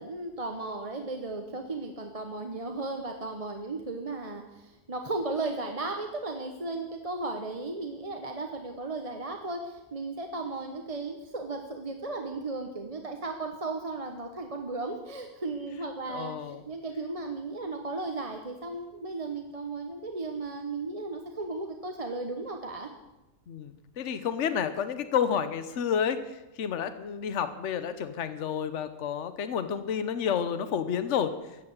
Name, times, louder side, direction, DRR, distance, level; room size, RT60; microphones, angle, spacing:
voice 1, 0.0-22.9, right 3 dB, 25° right, 4 dB, 1.0 m, -35 dB
voice 2, 16.1-16.6 23.5-26.2 26.6-31.3, left 8 dB, 55° left, 11 dB, 1.2 m, -30 dB
14.5 x 8.4 x 8.3 m, 1.0 s
omnidirectional pair, 1.6 m